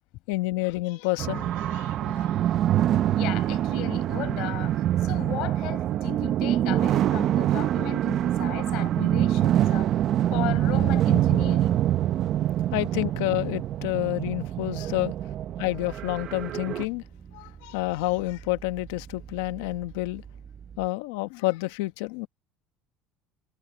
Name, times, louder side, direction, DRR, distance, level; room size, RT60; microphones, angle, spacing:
voice 1, 0.3-2.3 12.7-15.1 15.6-17.0 17.3-20.2 20.8-22.3, left 20 dB, 90° left, 1.1 m, -29 dB
sound 1, 1.2-16.8, right 12 dB, 45° right, 0.7 m, -25 dB
sound 2, 2.2-20.9, right 7 dB, 30° right, 7.6 m, -47 dB
voice 2, 3.2-9.9 10.3-11.8, left 19 dB, 60° left, 7.3 m, -36 dB
cardioid pair, 145°, 0 cm